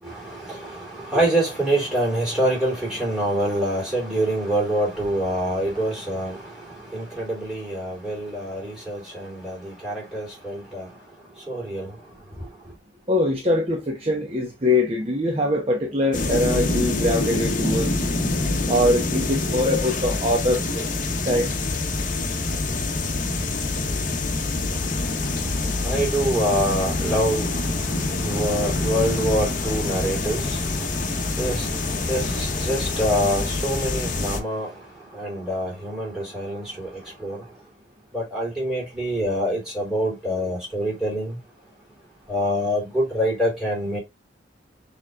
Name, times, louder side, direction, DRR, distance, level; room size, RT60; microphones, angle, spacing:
voice 1, 0.0-10.9 11.5-11.9 25.8-34.7 35.1-37.4 38.1-41.4 42.3-44.0, right 1 dB, 5° right, 3.1 m, -26 dB
voice 2, 13.1-17.9 18.6-20.9 21.2-21.5, left 1 dB, 35° right, 1.0 m, -23 dB
sound 1, 16.1-34.4, left 2 dB, 45° left, 1.0 m, -26 dB
6.5 x 3.4 x 2.4 m
head